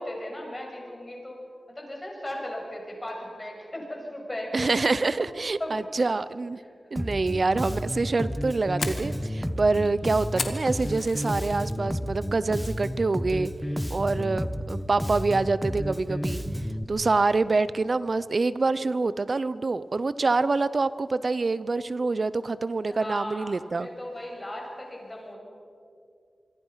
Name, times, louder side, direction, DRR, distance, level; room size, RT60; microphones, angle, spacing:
voice 1, 0.0-1.4 1.7-4.7 5.6-5.7 6.9-7.0 22.9-25.4, left 1 dB, 25° left, 0 dB, 6.9 m, -37 dB
voice 2, 4.5-6.6 6.9-13.5 13.9-16.4 16.9-23.9, right 3 dB, 50° right, 16 dB, 0.7 m, -26 dB
Bass guitar, 7.0-16.8, equal, ahead, 1.3 m, -31 dB
Fire, 8.4-11.8 12.2-12.6 12.9-13.1 13.6-13.9, left 4 dB, 75° left, 2.0 m, -36 dB
26.0 x 24.0 x 5.8 m, 2.5 s
wide cardioid pair, 75°, 0 cm